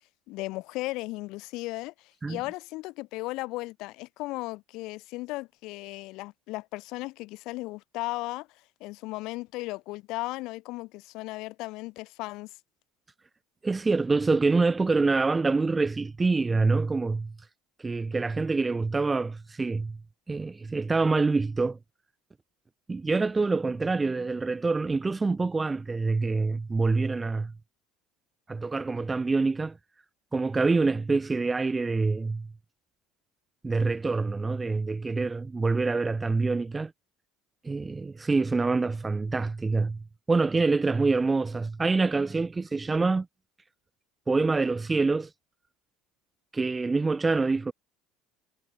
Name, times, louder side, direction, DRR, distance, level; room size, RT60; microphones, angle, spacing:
voice 1, 0.3-8.5 8.8-12.5, left 21 dB, 65° left, 3.8 m, -36 dB
voice 2, 13.6-17.3 17.8-20.0 20.3-21.8 22.9-27.5 28.5-29.8 30.3-32.5 33.6-36.9 37.6-43.3 44.3-45.3 46.5-47.7, right 3 dB, 15° right, 0.9 m, -26 dB
supercardioid pair, 105°, 0 cm